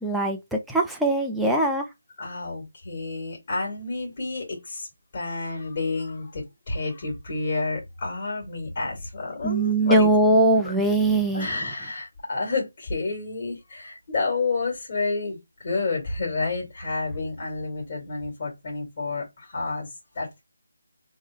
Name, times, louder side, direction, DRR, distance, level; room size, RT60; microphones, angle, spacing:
voice 1, 0.0-1.8 9.4-11.6, right 2 dB, ahead, 0.5 m, -21 dB
voice 2, 2.2-4.9 5.1-10.1 10.6-10.7 11.3-19.9 20.1-20.4, left 3 dB, 35° left, 2.4 m, -30 dB
3.7 x 3.1 x 3.7 m
figure-of-eight pair, 170°, 0 cm